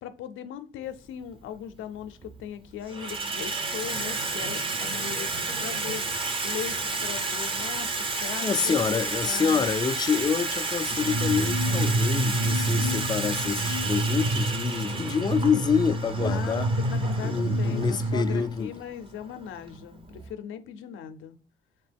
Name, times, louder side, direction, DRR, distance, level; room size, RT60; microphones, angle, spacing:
voice 1, 0.0-9.7 14.8-15.1 16.2-21.4, left 9 dB, 80° left, 0.6 m, -39 dB
Water tap faucet / Sink (filling or washing), 0.9-1.1 2.0-2.4 2.7-20.3, right 3 dB, 25° right, 0.5 m, -32 dB
voice 2, 8.4-16.7 17.2-18.7, left 6 dB, 20° left, 0.3 m, -27 dB
sound 1, 10.9-18.5, right 1 dB, 65° right, 1.1 m, -28 dB
3.5 x 2.9 x 3.4 m
cardioid pair, 90°, 20 cm